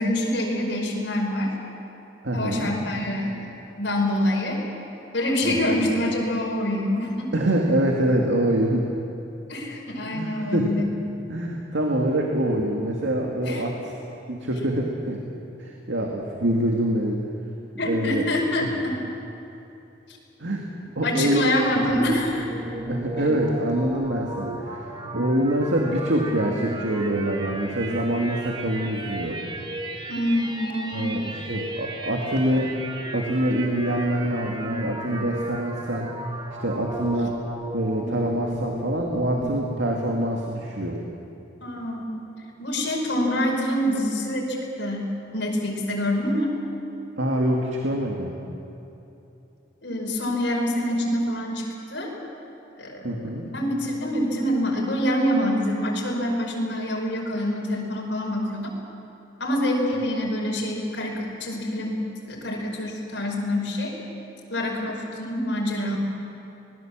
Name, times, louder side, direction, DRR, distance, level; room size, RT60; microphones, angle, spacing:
voice 1, 0.0-1.5 2.3-3.5 3.8-4.6 5.1-7.3 9.5-10.9 13.4-13.6 17.8-18.9 21.0-22.5 23.2-23.4 30.1-31.2 41.6-42.2 42.6-46.5 49.8-51.6 51.9-52.1 52.8-58.7 59.4-63.9 64.5-66.0, left 1 dB, 70° left, -1 dB, 5.2 m, -26 dB
voice 2, 2.2-2.7 5.4-5.8 7.3-8.9 10.1-10.7 11.3-13.9 14.3-15.2 15.6-17.3 17.8-18.3 18.6-18.8 20.4-20.6 21.0-21.5 22.9-29.4 30.9-32.8 33.1-36.1 36.6-37.4 37.7-41.0 47.2-48.4 53.0-53.4, right 1 dB, 85° right, 0 dB, 2.2 m, -25 dB
sound 1, 21.6-39.8, right 1 dB, 25° right, 1.7 m, -35 dB
25.5 x 20.0 x 7.5 m, 2.9 s
head